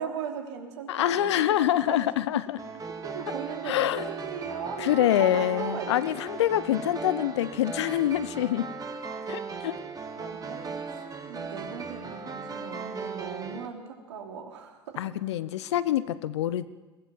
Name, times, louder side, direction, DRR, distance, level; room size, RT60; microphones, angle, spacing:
voice 1, 0.0-2.4 3.0-6.1 7.2-7.3 10.2-15.0, right 6 dB, 75° right, 2 dB, 3.1 m, -38 dB
voice 2, 0.9-2.6 3.6-4.1 4.8-8.7 9.3-9.8 15.0-16.7, left 12 dB, 70° left, 16 dB, 0.9 m, -26 dB
sound 1, 2.6-13.7, right 4 dB, 25° right, 2.2 m, -37 dB
22.0 x 17.5 x 7.3 m, 1.2 s
figure-of-eight pair, 75°, 15 cm